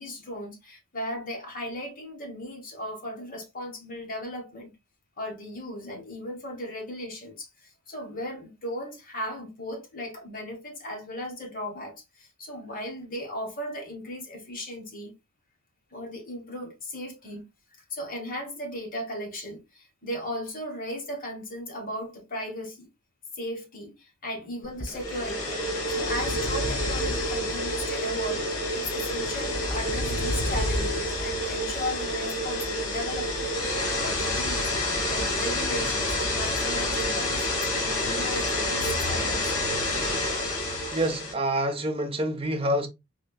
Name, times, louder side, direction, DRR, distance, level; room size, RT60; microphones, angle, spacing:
voice 1, 0.0-4.7 5.2-15.1 15.9-17.4 17.7-22.9 23.3-25.6 25.9-33.6 34.0-34.7 35.0-39.6, left 1 dB, 40° left, 1.4 m, -36 dB
sound 1, 24.8-41.3, left 1 dB, 65° left, 1.8 m, -28 dB
voice 2, 40.9-42.9, right 1 dB, 25° right, 0.7 m, -27 dB
4.3 x 3.0 x 2.3 m
head